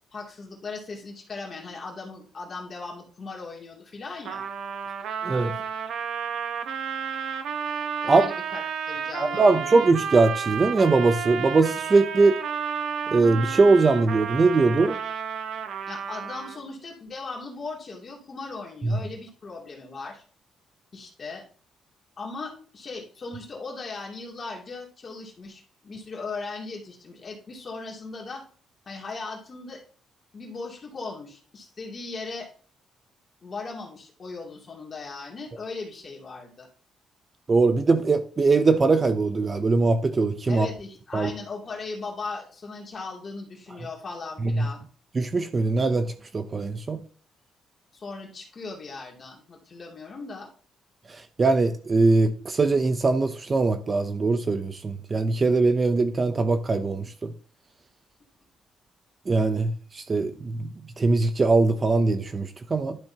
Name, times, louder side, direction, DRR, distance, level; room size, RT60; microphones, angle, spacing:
voice 1, 0.1-4.5 8.0-9.7 15.9-20.2 20.9-21.4 22.2-28.4 28.9-29.8 30.3-32.5 33.4-36.7 40.5-44.8 47.9-50.5, left 3 dB, 30° left, 2.8 m, -38 dB
Trumpet, 4.2-16.7, right 7 dB, 65° right, 0.9 m, -32 dB
voice 2, 9.2-12.4 13.1-15.0 18.8-19.0 37.5-40.7 41.1-41.3 44.4-44.7 45.2-47.0 51.1-57.3 59.3-63.0, right 3 dB, 25° right, 0.6 m, -21 dB
12.0 x 6.9 x 2.9 m
cardioid pair, 165°, 0 cm